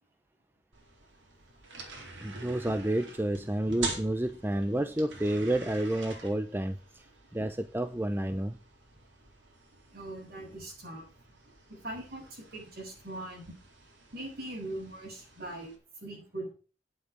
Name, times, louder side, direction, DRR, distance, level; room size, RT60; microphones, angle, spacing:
sound 1, 0.7-15.8, right 3 dB, 90° right, 4.4 m, -46 dB
voice 1, 2.2-7.0 7.3-8.6, right 1 dB, 10° right, 10 dB, 0.6 m, -30 dB
voice 2, 9.9-11.1 11.7-13.6 14.1-15.7 16.0-16.5, right 1 dB, 55° right, 0 dB, 7.5 m, -41 dB
9.8 x 8.1 x 8.4 m, 0.36 s
head